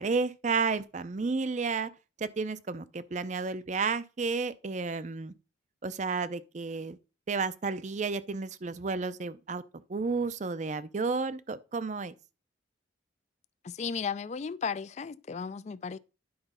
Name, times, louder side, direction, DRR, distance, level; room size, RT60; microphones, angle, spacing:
voice 1, 0.0-1.9 2.2-5.3 5.8-7.0 7.3-9.6 9.9-12.1, right 4 dB, 40° right, 0.5 m, -32 dB
voice 2, 13.6-16.0, left 6 dB, 35° left, 0.3 m, -35 dB
10.5 x 3.9 x 5.4 m
head